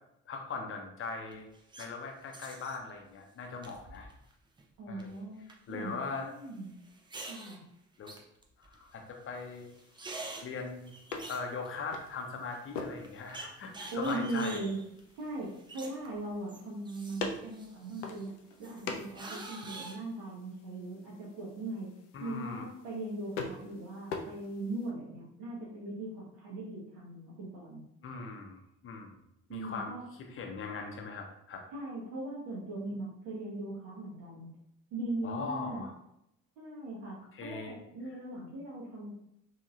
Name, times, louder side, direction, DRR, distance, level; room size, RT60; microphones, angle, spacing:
voice 1, 0.3-1.5 1.8-4.1 4.9-5.1 5.7-6.3 8.0-8.1 8.6-9.7 10.4-10.9 11.3-14.6 22.1-22.6 28.0-28.6 28.8-29.1 29.5-30.0 30.3-31.6 35.2-35.9 37.3-37.8, left 4 dB, 35° left, 2 dB, 0.7 m, -40 dB
sound 1, 1.3-1.9 2.3-2.8 3.6-4.3 4.6-5.0 5.5-5.6 6.8-7.6 8.1-8.9 9.3-9.4 9.6-12.1 12.5-12.6 13.0-16.2 16.5-18.3 18.6-20.0, right 2 dB, 15° right, 0.4 m, -46 dB
voice 2, 4.8-5.4 5.7-6.7 7.3-7.7 13.9-14.8 15.2-18.3 18.6-21.9 22.2-27.8 29.5-30.0 31.7-34.6 34.9-35.8 36.6-39.1, right 2 dB, 60° right, -4 dB, 0.8 m, -39 dB
sound 2, 9.3-24.9, left 4 dB, 70° left, 0.5 m, -45 dB
2.8 x 2.8 x 2.4 m, 0.81 s
figure-of-eight pair, 45°, 38 cm